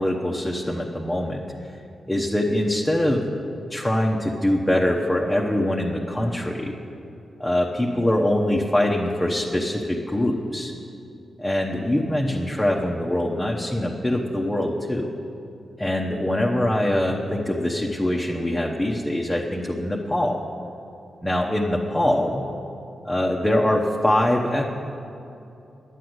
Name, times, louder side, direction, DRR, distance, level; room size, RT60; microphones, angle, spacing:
voice 1, 0.0-1.4 2.1-3.2 3.7-6.7 7.4-10.7 11.4-15.1 15.8-20.4 21.2-22.5 23.0-24.6, left 1 dB, 10° left, -1 dB, 1.0 m, -23 dB
10.5 x 9.2 x 7.9 m, 2.8 s
cardioid pair, 90°, 0 cm